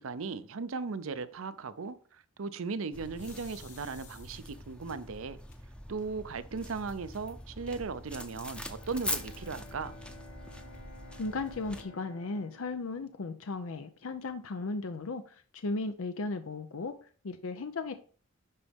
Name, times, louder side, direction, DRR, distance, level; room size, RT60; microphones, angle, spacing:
voice 1, 0.0-5.4 5.9-9.9, right 4 dB, 85° right, 0.6 m, -37 dB
sound 1, 2.9-11.8, left 1 dB, 5° left, 0.7 m, -43 dB
sound 2, 3.1-4.7 5.5-5.6 6.0-6.1 6.4-7.0, left 6 dB, 40° left, 1.4 m, -55 dB
Bowed string instrument, 8.6-14.6, left 2 dB, 60° left, 2.7 m, -54 dB
voice 2, 11.2-17.9, left 3 dB, 85° left, 0.6 m, -36 dB
11.0 x 4.1 x 3.5 m
head